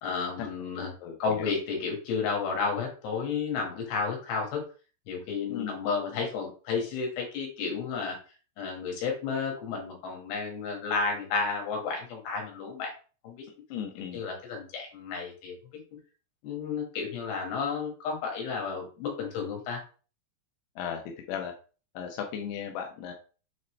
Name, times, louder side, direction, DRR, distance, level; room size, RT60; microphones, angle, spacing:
voice 1, 0.0-0.9 1.2-4.6 5.1-8.2 8.6-12.9 13.2-13.5 14.1-15.6 16.4-19.8, left 5 dB, 65° left, 1 dB, 3.5 m, -32 dB
voice 2, 1.0-1.5 5.5-5.7 13.7-14.2 20.8-21.0 21.3-21.5 21.9-23.1, left 8 dB, 90° left, 3 dB, 2.3 m, -36 dB
7.8 x 4.0 x 3.2 m, 0.37 s
omnidirectional pair, 5.9 m